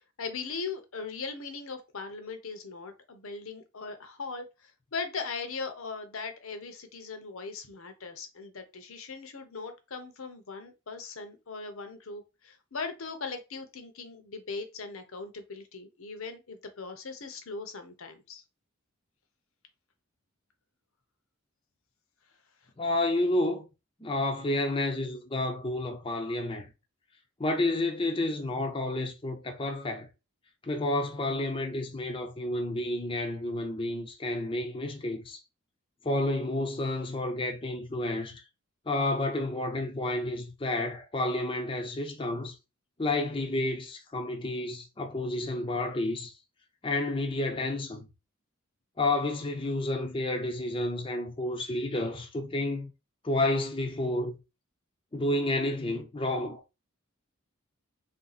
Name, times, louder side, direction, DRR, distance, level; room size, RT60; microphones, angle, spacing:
voice 1, 0.2-18.4, left 4 dB, 75° left, 0.8 m, -39 dB
voice 2, 22.8-23.6 24.0-26.7 27.4-30.1 30.6-35.4 36.0-38.4 38.9-42.6 43.0-46.3 46.8-48.1 49.0-52.9 53.2-54.3 55.1-56.6, left 2 dB, 25° left, 0.6 m, -30 dB
3.4 x 2.7 x 4.0 m
head